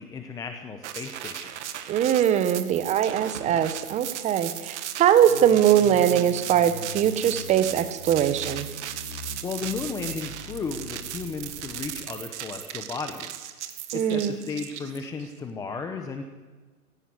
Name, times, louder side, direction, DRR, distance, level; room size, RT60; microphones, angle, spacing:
voice 1, 0.0-1.5 9.4-16.2, left 4 dB, 10° left, 6 dB, 0.8 m, -35 dB
sound 1, 0.8-15.3, right 11 dB, 50° right, 1.9 m, -37 dB
voice 2, 1.9-8.7 13.9-14.4, right 10 dB, 15° right, 11 dB, 1.1 m, -21 dB
sound 2, 5.3-12.0, left 3 dB, 85° left, 3.5 m, -42 dB
18.0 x 17.0 x 9.7 m, 1.3 s
hypercardioid pair, 140°, 44 cm